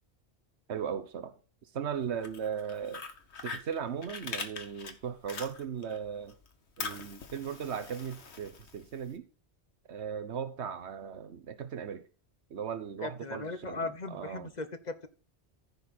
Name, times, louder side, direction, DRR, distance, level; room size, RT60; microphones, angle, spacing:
voice 1, 0.7-1.3 1.7-3.0 3.4-6.4 6.8-9.2 9.9-12.1 12.5-14.5, right 7 dB, 85° right, 1.2 m, -37 dB
Fire, 2.0-6.0 6.3-9.1, left 4 dB, 85° left, 1.6 m, -42 dB
voice 2, 13.0-15.1, left 3 dB, 40° left, 1.1 m, -38 dB
15.0 x 5.3 x 4.1 m
omnidirectional pair, 1.1 m